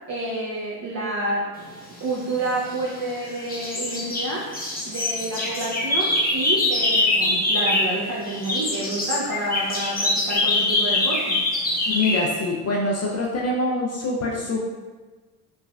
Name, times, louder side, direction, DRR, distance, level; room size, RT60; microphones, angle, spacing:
voice 1, 0.1-1.5 2.0-4.5 4.8-11.4, right 1 dB, 40° right, -5 dB, 0.7 m, -29 dB
sound 1, 2.3-3.2 3.5-8.0 8.2-12.3, left 2 dB, 20° left, 0.8 m, -24 dB
voice 2, 11.9-14.6, left 2 dB, 35° left, -3 dB, 0.4 m, -24 dB
3.2 x 2.2 x 2.2 m, 1.3 s
hypercardioid pair, 55°, 46 cm